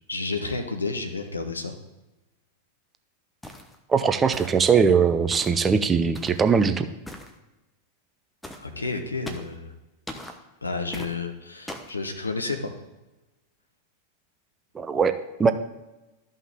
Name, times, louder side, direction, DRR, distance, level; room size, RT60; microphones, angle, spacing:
voice 1, 0.1-1.7 8.6-9.7 10.6-12.7, left 3 dB, 80° left, 6 dB, 1.0 m, -31 dB
sound 1, 3.4-3.8 4.3-4.7 5.3-5.6 6.1-6.4 7.1-7.3 8.4-8.7 9.3-9.6 10.1-10.4 10.9-11.1 11.7-12.0, left 1 dB, 5° left, 0.9 m, -39 dB
voice 2, 3.9-6.9 14.7-15.5, right 6 dB, 20° right, 10 dB, 0.6 m, -21 dB
13.0 x 5.5 x 3.5 m, 1.0 s
figure-of-eight pair, 90°, 0 cm